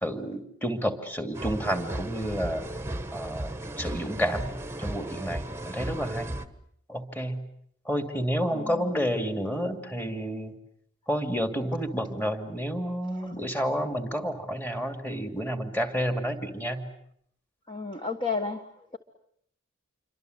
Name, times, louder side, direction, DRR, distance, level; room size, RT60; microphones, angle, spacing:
voice 1, 0.0-2.6 3.1-4.5 4.8-6.3 6.9-7.4 7.9-10.5 11.1-16.8, equal, 10° left, 7 dB, 2.6 m, -30 dB
sound 1, 1.3-6.5, right 1 dB, 10° right, 1.3 m, -35 dB
voice 2, 8.5-8.9 17.7-18.6, left 4 dB, 25° left, 4 dB, 1.5 m, -31 dB
28.0 x 24.5 x 8.0 m, 0.69 s
head